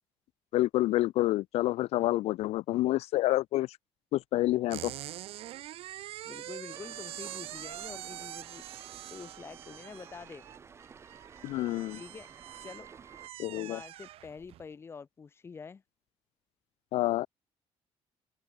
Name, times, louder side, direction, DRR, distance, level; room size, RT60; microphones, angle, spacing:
voice 1, 0.5-3.8 4.1-4.9 11.4-12.0 13.4-13.8 16.9-17.3, left 16 dB, 85° left, 1.9 m, -28 dB
sound 1, 4.7-14.7, right 14 dB, 70° right, 2.1 m, -44 dB
voice 2, 6.2-8.6 9.1-10.5 11.9-12.3 12.6-12.9 13.5-15.8, left 5 dB, 25° left, 7.0 m, -46 dB
sound 2, 6.7-13.3, right 6 dB, 25° right, 6.4 m, -53 dB
open air
cardioid pair, 175°, 10 cm